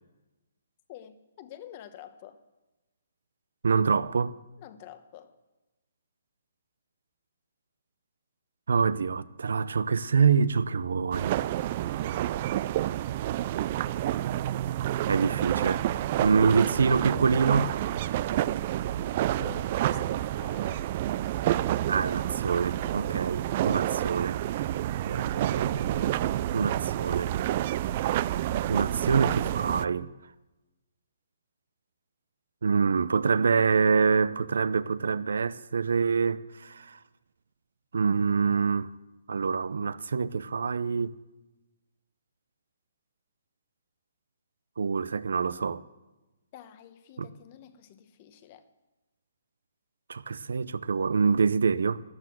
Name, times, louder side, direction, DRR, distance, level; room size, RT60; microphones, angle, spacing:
voice 1, 0.9-2.4 4.6-5.4 19.4-20.8 46.5-48.7, left 11 dB, 35° left, 1.0 m, -48 dB
voice 2, 3.6-4.3 8.7-11.4 15.1-15.8 16.2-17.8 21.9-24.8 25.1-26.1 26.5-27.3 28.7-30.1 32.6-37.0 37.9-38.9 39.3-41.2 44.8-45.8 47.2-47.3 50.1-52.0, right 5 dB, 80° right, 0.7 m, -26 dB
sound 1, 11.1-29.8, right 13 dB, 35° right, 0.4 m, -29 dB
12.5 x 12.0 x 7.8 m
hypercardioid pair, 160°, 0 cm